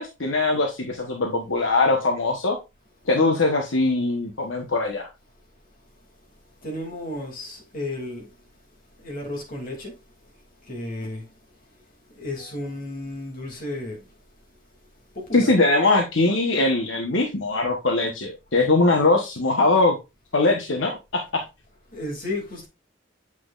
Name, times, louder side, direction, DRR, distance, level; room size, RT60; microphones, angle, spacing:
voice 1, 0.0-2.6 3.1-5.1 15.3-20.0 20.3-21.4, left 2 dB, 75° left, 1.1 m, -21 dB
voice 2, 6.6-8.4 9.0-10.0 10.6-11.3 12.1-14.1 15.1-15.5 21.9-22.7, left 1 dB, 45° left, 2.7 m, -33 dB
8.1 x 6.1 x 2.5 m
head